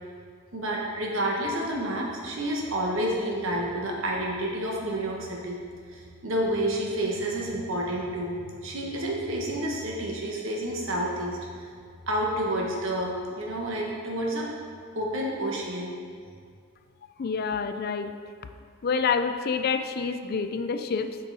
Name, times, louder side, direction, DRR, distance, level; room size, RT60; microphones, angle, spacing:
voice 1, 0.5-5.6 5.9-8.4 8.6-11.4 12.1-14.5 14.9-16.0, right 1 dB, 75° right, -1 dB, 1.2 m, -29 dB
sound 1, 2.0-15.4, left 1 dB, 5° right, 0.9 m, -52 dB
voice 2, 17.2-18.2 18.8-21.2, left 5 dB, 50° left, 9 dB, 0.4 m, -27 dB
7.5 x 5.3 x 4.1 m, 2.1 s
head